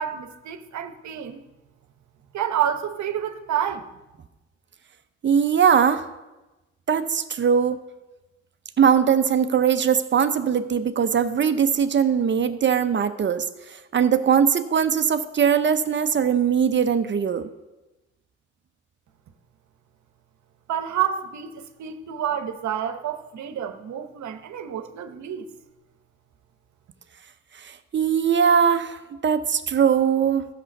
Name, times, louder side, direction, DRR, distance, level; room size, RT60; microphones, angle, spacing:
voice 1, 0.0-1.4 2.3-3.9 20.7-25.5, right 9 dB, 65° right, 8 dB, 1.0 m, -29 dB
voice 2, 5.2-6.1 6.9-7.8 8.8-13.4 13.9-17.5 27.9-30.5, right 7 dB, 40° right, 10 dB, 0.7 m, -20 dB
12.5 x 6.8 x 5.3 m, 1.1 s
cardioid pair, 90°, 30 cm